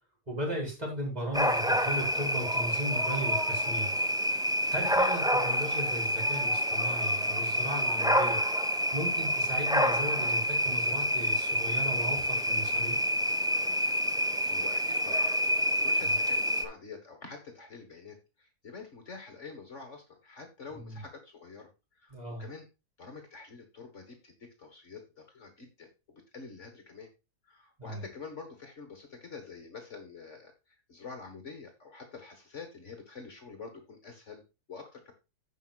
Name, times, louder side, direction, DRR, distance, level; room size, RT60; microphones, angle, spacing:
voice 1, 0.3-4.0 4.7-8.4 8.9-13.0 16.0-16.2 20.7-21.0 22.1-22.5 27.8-28.0, equal, 25° right, -1 dB, 4.4 m, -36 dB
sound 1, 1.3-16.6, equal, 5° right, 0.8 m, -28 dB
voice 2, 14.5-15.3 15.6-22.7 23.0-27.1 27.4-34.4 34.7-35.1, left 4 dB, 50° left, 5 dB, 1.9 m, -47 dB
16.0 x 5.5 x 2.4 m, 0.27 s
omnidirectional pair, 1.6 m